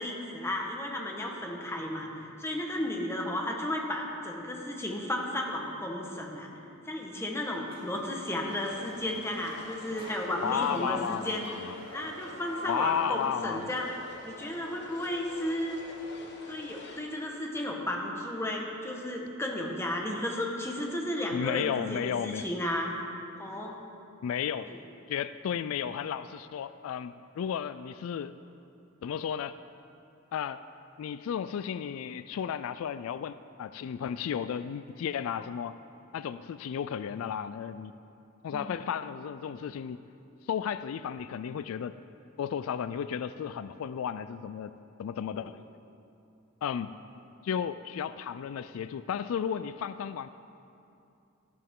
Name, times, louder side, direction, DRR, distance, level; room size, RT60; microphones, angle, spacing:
voice 1, 0.0-6.5 6.8-13.9 14.2-15.8 16.5-22.9 23.4-23.7 24.7-24.8 38.5-38.7 45.4-45.5, left 1 dB, 15° left, 0 dB, 1.3 m, -34 dB
sound 1, 7.6-12.7, right 1 dB, 50° right, 2.8 m, -53 dB
sound 2, 8.5-17.0, left 2 dB, 55° left, 1.3 m, -48 dB
Bowed string instrument, 9.8-14.3, right 1 dB, 75° right, 1.2 m, -51 dB
voice 2, 10.4-11.7 12.6-13.7 21.3-22.4 24.2-24.7 25.1-28.3 29.0-29.6 30.3-30.6 31.0-35.8 36.1-37.9 38.4-40.0 40.5-42.0 42.4-44.7 45.0-45.6 46.6-46.9 47.4-50.3, left 8 dB, 80° left, 13 dB, 0.3 m, -33 dB
13.0 x 12.0 x 3.7 m, 2.7 s
head